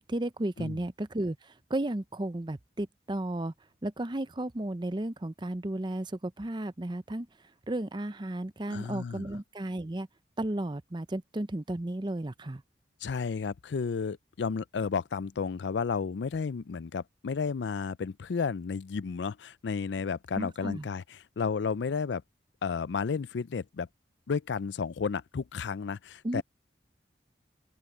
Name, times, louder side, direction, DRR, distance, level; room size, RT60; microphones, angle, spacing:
voice 1, 0.0-3.5 3.8-7.3 7.7-10.1 10.4-12.6 20.3-20.9 26.2-26.4, right 1 dB, 25° right, 0.7 m, -34 dB
voice 2, 8.7-9.3 13.0-21.0 21.4-22.2 22.6-23.9 24.3-26.4, left 5 dB, 85° left, 0.4 m, -32 dB
open air
head